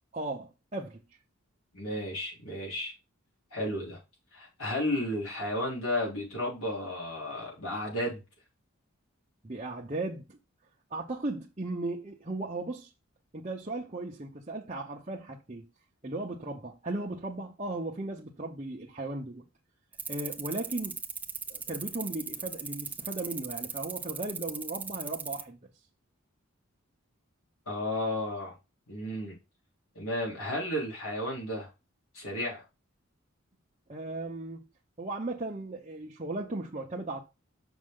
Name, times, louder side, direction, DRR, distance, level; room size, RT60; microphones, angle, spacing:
voice 1, 0.1-1.0 9.4-10.4 10.9-12.9 13.3-15.7 16.0-19.4 20.1-21.0 21.5-25.6 33.9-34.6 35.0-37.2, right 2 dB, 30° right, 0.8 m, -36 dB
voice 2, 1.7-2.9 3.5-4.0 4.3-8.2 27.7-28.5 28.9-29.4 30.0-31.7 32.1-32.6, left 1 dB, 85° left, 3.8 m, -33 dB
sound 1, 19.9-25.4, right 5 dB, 10° right, 0.3 m, -37 dB
6.4 x 5.4 x 3.8 m
head